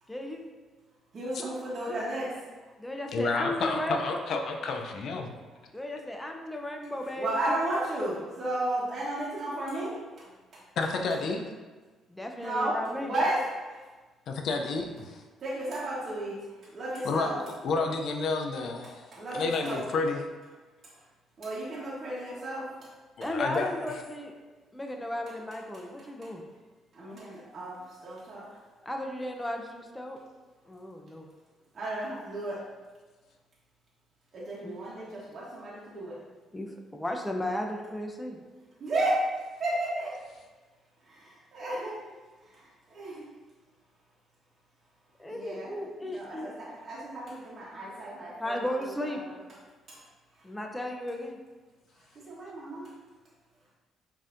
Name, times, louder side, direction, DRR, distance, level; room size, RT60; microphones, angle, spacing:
voice 1, 0.1-0.5 2.8-4.1 5.7-7.6 12.1-13.1 23.2-24.3 24.7-26.4 28.8-30.2 30.7-31.3 34.6-34.8 36.5-38.4 45.2-46.5 48.4-49.2 50.4-51.4, left 1 dB, 10° left, 2 dB, 0.6 m, -35 dB
voice 2, 1.1-2.3 7.2-10.3 10.5-10.6 12.3-13.8 15.4-17.4 18.8-19.8 20.8-20.9 21.4-22.9 26.9-28.6 31.7-32.6 34.3-36.2 38.8-39.3 39.6-40.1 41.1-42.0 42.4-43.3 45.3-45.7 46.0-49.4 49.9-50.0 52.3-52.9, right 1 dB, 45° right, -7 dB, 1.1 m, -33 dB
voice 3, 3.1-5.3 10.8-11.4 14.3-15.2 17.0-19.1 19.3-20.2 23.2-23.7, left 3 dB, 65° left, 3 dB, 0.4 m, -30 dB
5.3 x 2.7 x 2.6 m, 1.3 s
supercardioid pair, 70°, 0 cm